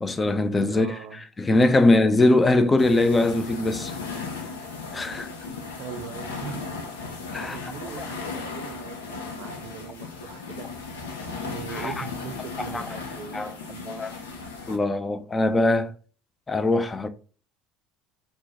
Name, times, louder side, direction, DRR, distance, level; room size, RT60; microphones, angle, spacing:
voice 1, 0.0-0.9 1.1-3.9 4.9-5.3 7.3-7.6 8.0-8.1 11.7-12.0 12.7-12.9 13.3-13.5 13.9-14.1 14.7-15.9 16.5-17.1, left 2 dB, 20° left, 0.4 m, -22 dB
voice 2, 0.7-1.2 5.8-6.9 7.4-10.7 11.4-14.1, right 7 dB, 60° right, 0.5 m, -41 dB
sound 1, 2.8-14.8, left 4 dB, 85° left, 0.6 m, -36 dB
2.9 x 2.1 x 3.9 m
hypercardioid pair, 70°, 0 cm